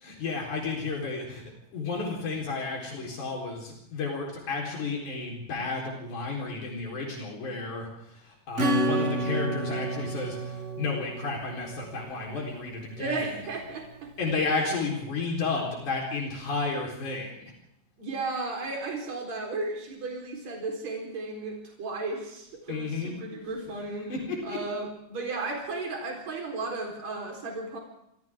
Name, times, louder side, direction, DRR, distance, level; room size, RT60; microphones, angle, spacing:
voice 1, 0.0-1.4 1.7-13.2 14.2-17.5 22.7-23.1 24.1-24.6, left 4 dB, 85° left, -1 dB, 5.6 m, -32 dB
Acoustic guitar / Strum, 8.6-12.8, right 1 dB, 35° right, 1.2 m, -30 dB
voice 2, 13.0-14.1 14.6-14.7 18.0-24.1 24.4-27.8, right 3 dB, 65° right, 0 dB, 5.4 m, -34 dB
27.0 x 27.0 x 3.7 m, 0.78 s
omnidirectional pair, 3.4 m